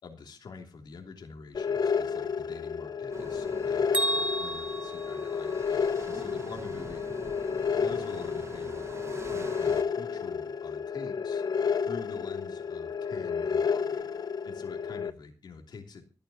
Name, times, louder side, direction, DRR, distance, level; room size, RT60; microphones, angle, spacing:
voice 1, 0.0-7.0 7.8-8.9 9.3-11.4 11.8-14.1 14.4-16.1, left 4 dB, 85° left, 2 dB, 3.0 m, -46 dB
sound 1, 1.5-15.1, left 6 dB, 65° left, 0.6 m, -31 dB
sound 2, 3.1-9.8, right 3 dB, 40° right, 1.0 m, -46 dB
Bell, 3.9-6.0, right 2 dB, 20° right, 2.0 m, -32 dB
25.5 x 8.8 x 2.9 m, 0.33 s
wide cardioid pair, 90°, 7 cm